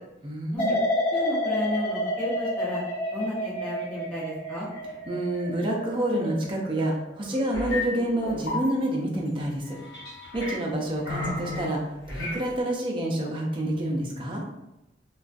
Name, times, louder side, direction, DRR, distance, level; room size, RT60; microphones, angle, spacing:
voice 1, 0.2-0.8 5.1-9.8 10.3-11.8 12.1-14.4, right 1 dB, 30° right, -2 dB, 0.4 m, -28 dB
sound 1, 0.6-7.5 7.9-8.4, left 1 dB, 40° left, 0.9 m, -30 dB
voice 2, 1.1-2.8 3.1-4.7, left 1 dB, 10° left, -8 dB, 0.7 m, -33 dB
sound 2, 7.5-7.9 8.2-8.6 9.6-10.6 11.0-11.7 12.1-12.4, left 2 dB, 70° left, 1.1 m, -33 dB
2.3 x 2.2 x 2.4 m, 0.92 s
head